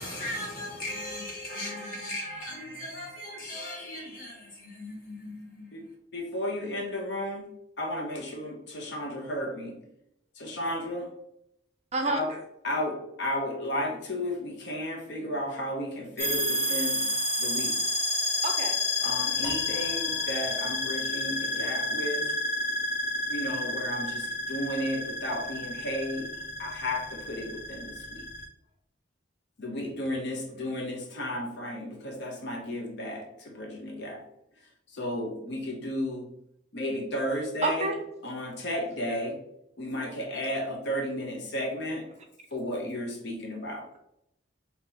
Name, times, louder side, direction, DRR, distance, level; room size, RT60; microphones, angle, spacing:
voice 1, 0.0-5.9, left 1 dB, 45° left, 1.4 m, -38 dB
voice 2, 5.7-7.5 7.8-9.8 10.4-11.1 12.1-12.3 12.6-17.1 17.4-17.8 19.0-22.3 23.3-26.3 26.6-28.3 29.6-34.2 34.9-36.3 36.7-37.9 38.2-39.4 39.8-42.1 42.5-43.9, left 1 dB, 60° left, 0.7 m, -33 dB
voice 3, 11.9-12.4 18.4-18.8 25.8-25.9 37.6-38.0, right 3 dB, 35° right, 0.5 m, -29 dB
sound 1, 16.2-28.5, left 1 dB, 15° left, 1.4 m, -30 dB
sound 2, 19.4-22.6, right 2 dB, 15° right, 1.0 m, -45 dB
4.2 x 2.8 x 3.8 m
head